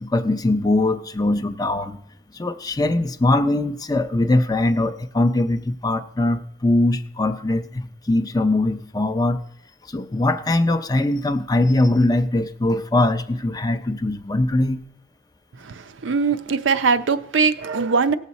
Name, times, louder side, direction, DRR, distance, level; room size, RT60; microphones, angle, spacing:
voice 1, 0.0-2.0 2.3-9.4 9.9-14.8, left 2 dB, 20° left, 0.5 m, -21 dB
voice 2, 15.6-18.1, right 5 dB, 85° right, 0.6 m, -21 dB
17.5 x 7.3 x 4.1 m
head